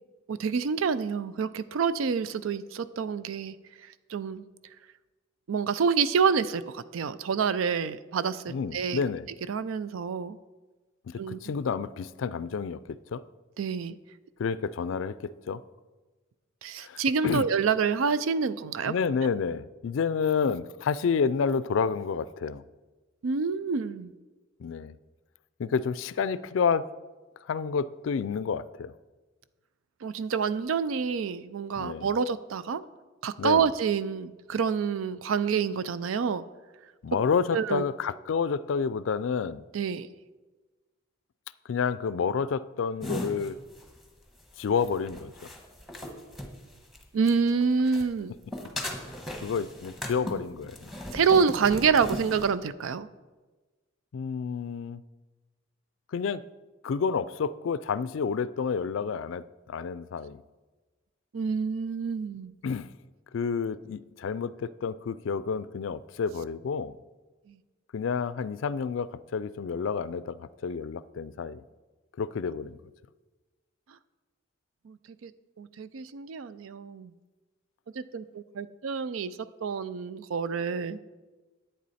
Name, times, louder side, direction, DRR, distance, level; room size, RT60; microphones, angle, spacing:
voice 1, 0.3-3.6 4.1-4.4 5.5-9.0 9.5-10.4 11.2-11.4 13.6-13.9 16.6-18.9 23.2-24.1 30.0-32.8 33.2-36.4 37.5-37.8 39.7-40.1 47.1-48.3 51.1-53.1 61.3-62.5 74.9-75.0 75.2-75.3 75.6-77.1 78.0-79.3 79.6-81.0, right 6 dB, 85° right, 15 dB, 0.4 m, -27 dB
voice 2, 8.5-9.3 11.1-13.2 14.4-15.6 16.8-17.5 18.9-22.6 24.6-25.0 25.6-26.9 27.4-28.9 31.8-32.2 33.4-33.7 37.0-39.6 41.7-43.6 44.6-45.5 49.4-50.9 54.1-55.0 56.1-56.4 56.8-60.4 62.6-62.9 63.3-67.0 67.9-71.6 72.2-72.8, left 6 dB, 70° left, 17 dB, 0.4 m, -29 dB
sound 1, 43.0-47.5 47.8-52.5, left 1 dB, ahead, 1.2 m, -38 dB
10.5 x 8.6 x 4.2 m, 1.3 s
head